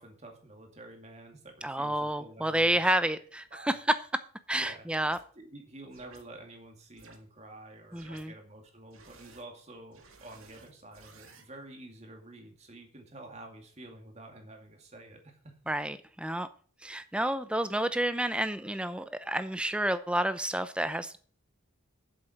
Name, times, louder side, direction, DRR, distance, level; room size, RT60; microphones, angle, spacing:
voice 1, 0.0-2.8 3.5-3.8 4.5-4.9 5.3-15.5, right 2 dB, 30° right, 2.3 m, -49 dB
voice 2, 1.6-3.8 4.5-5.2 7.9-8.3 15.7-16.5 16.8-21.2, right 1 dB, 5° right, 0.6 m, -30 dB
sound 1, 4.9-5.2 5.9-6.2 7.0-7.2 7.9-8.2 8.9-9.4 9.9-11.4, right 4 dB, 85° right, 1.9 m, -54 dB
7.6 x 7.5 x 6.5 m
head